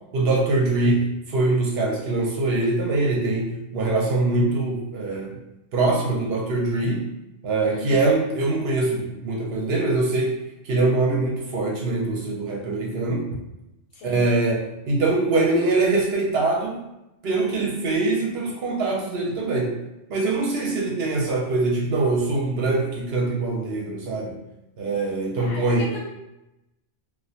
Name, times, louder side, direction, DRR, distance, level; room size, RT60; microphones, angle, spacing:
voice 1, 0.1-5.3 5.7-7.0 7.4-10.3 10.6-13.2 14.0-16.8 17.2-19.7 20.1-24.4 24.8-25.9, right 2 dB, 65° right, -2 dB, 0.7 m, -23 dB
voice 2, 13.9-14.3 25.4-26.0, left 3 dB, 90° left, -2 dB, 1.0 m, -37 dB
2.2 x 2.1 x 2.7 m, 0.92 s
omnidirectional pair, 1.2 m